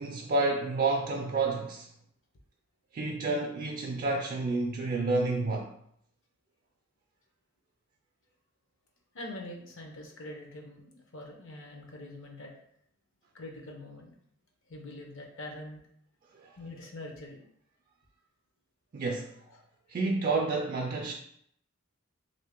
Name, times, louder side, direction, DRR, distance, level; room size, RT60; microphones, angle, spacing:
voice 1, 0.0-1.9 2.9-5.7 16.3-16.6 18.9-19.4 19.9-21.1, right 3 dB, 40° right, 0.4 m, -30 dB
voice 2, 9.1-12.5 13.3-14.2 14.7-15.8 16.6-17.4 19.5-19.6, left 1 dB, 65° left, 0.8 m, -44 dB
3.2 x 2.7 x 3.5 m
head